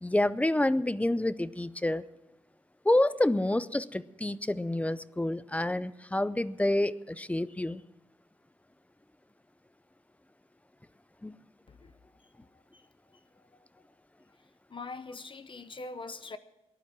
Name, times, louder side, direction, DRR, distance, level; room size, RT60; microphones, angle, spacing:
voice 1, 0.0-2.0 2.8-7.8 11.2-11.4, left 1 dB, 10° left, 0.5 m, -28 dB
voice 2, 14.7-16.4, left 3 dB, 50° left, 0.9 m, -42 dB
18.5 x 11.5 x 6.0 m
wide cardioid pair, 130°, 11 cm